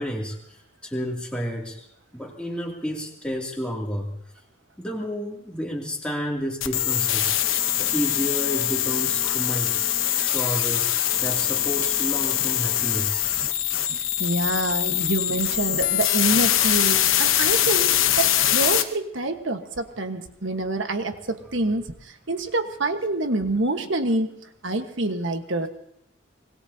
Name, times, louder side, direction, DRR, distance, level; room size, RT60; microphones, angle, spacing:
voice 1, 0.0-1.9 2.1-4.1 4.8-7.3 7.8-9.8 10.2-13.2, equal, 5° left, -2 dB, 2.6 m, -30 dB
sound 1, 6.6-18.8, left 11 dB, 85° left, 1.0 m, -23 dB
voice 2, 13.9-24.3 24.6-25.7, right 2 dB, 70° right, 7 dB, 1.4 m, -27 dB
25.0 x 20.5 x 2.8 m, 0.74 s
head